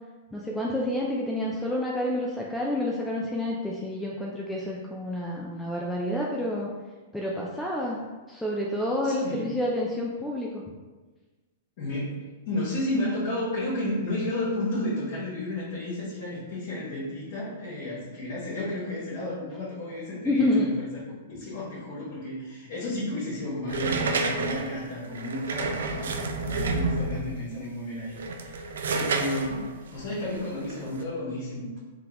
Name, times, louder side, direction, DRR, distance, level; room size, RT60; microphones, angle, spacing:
voice 1, 0.3-6.7 7.1-8.0 8.3-10.6 20.2-20.7, left 1 dB, 5° left, -4 dB, 0.3 m, -28 dB
voice 2, 9.0-9.5 11.8-20.9 21.3-31.8, left 1 dB, 60° left, -8 dB, 1.1 m, -32 dB
sound 1, 23.7-27.4 28.1-31.0, right 3 dB, 80° right, 0.3 m, -29 dB
3.6 x 2.2 x 2.9 m, 1.3 s
hypercardioid pair, 125°, 0 cm